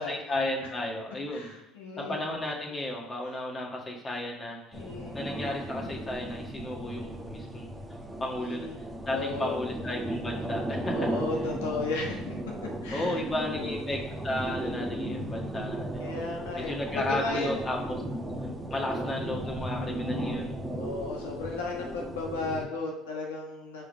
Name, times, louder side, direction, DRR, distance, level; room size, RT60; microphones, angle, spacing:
voice 1, 0.0-1.5 2.0-4.8 5.1-7.7 8.2-8.7 9.1-11.0 12.9-16.0 16.6-18.0 18.7-20.6, left 1 dB, 30° left, 0 dB, 1.5 m, -33 dB
voice 2, 1.3-2.2 4.7-5.2 8.3-8.8 9.1-9.6 10.9-13.7 16.0-17.6 20.0-20.5 20.8-23.9, left 3 dB, 85° left, 0 dB, 1.3 m, -35 dB
sound 1, 4.7-22.7, right 1 dB, 15° right, 1.0 m, -36 dB
5.4 x 3.6 x 5.1 m, 0.86 s
hypercardioid pair, 75°, 0 cm